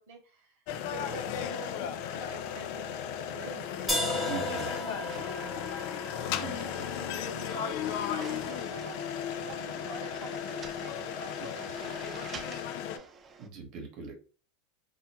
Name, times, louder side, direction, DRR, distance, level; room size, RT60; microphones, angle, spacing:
voice 1, 0.0-4.5 4.8-5.5 6.0-6.2 6.7-13.1, right 4 dB, 80° right, -1 dB, 0.5 m, -48 dB
sound 1, 0.7-13.0, left 9 dB, 60° left, 0.3 m, -35 dB
sound 2, 3.9-9.8, equal, ahead, 1.0 m, -38 dB
voice 2, 4.1-4.7 6.2-6.7 11.4-11.5 13.4-14.1, right 6 dB, 55° right, 3 dB, 1.0 m, -41 dB
sound 3, 4.5-13.5, right 4 dB, 30° right, 0.4 m, -48 dB
2.4 x 2.1 x 2.8 m, 0.36 s
hypercardioid pair, 100°, 0 cm